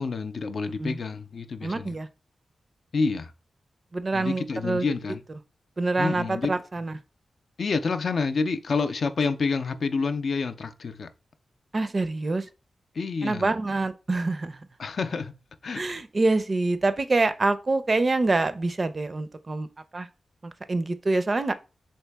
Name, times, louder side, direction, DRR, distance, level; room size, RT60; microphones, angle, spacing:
voice 1, 0.0-1.9 2.9-3.3 4.1-5.2 6.0-6.6 7.6-11.1 12.9-13.5 14.8-15.8, left 4 dB, 65° left, 0.3 m, -28 dB
voice 2, 1.6-2.1 3.9-4.9 5.8-6.9 11.7-12.5 13.2-14.6 15.7-19.7 19.9-20.1 20.4-21.5, right 3 dB, 45° right, 0.4 m, -26 dB
2.9 x 2.7 x 3.3 m
cardioid pair, 45°, 0 cm